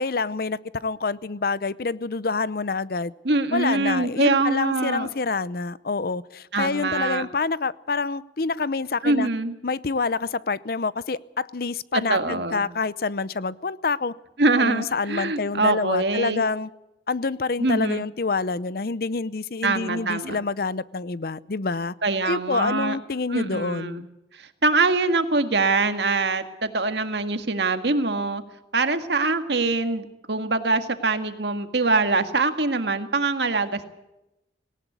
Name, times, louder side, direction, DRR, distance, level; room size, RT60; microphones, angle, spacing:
voice 1, 0.0-3.1 3.5-9.3 9.6-14.1 14.6-16.7 17.1-21.9 22.2-24.1, left 4 dB, 55° left, 0.7 m, -27 dB
voice 2, 3.2-5.1 6.5-7.3 9.0-9.5 11.9-12.6 14.4-16.4 17.6-18.0 19.6-20.4 22.0-23.0 23.3-24.0 24.4-28.4 28.7-33.8, right 3 dB, 70° right, 1.8 m, -23 dB
18.5 x 18.5 x 8.1 m
head